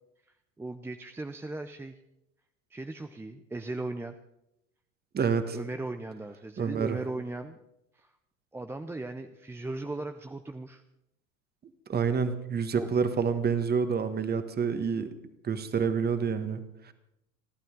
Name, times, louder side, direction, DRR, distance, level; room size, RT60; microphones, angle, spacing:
voice 1, 0.6-1.9 2.7-4.1 5.5-7.6 8.0-8.1 8.5-10.8 12.7-12.9, right 2 dB, 5° right, 8 dB, 0.6 m, -37 dB
voice 2, 5.1-5.6 6.6-7.0 11.9-15.1 15.4-16.6 16.9-17.0, right 6 dB, 25° right, 10 dB, 1.6 m, -28 dB
29.5 x 11.5 x 3.9 m, 0.83 s
figure-of-eight pair, 80°, 41 cm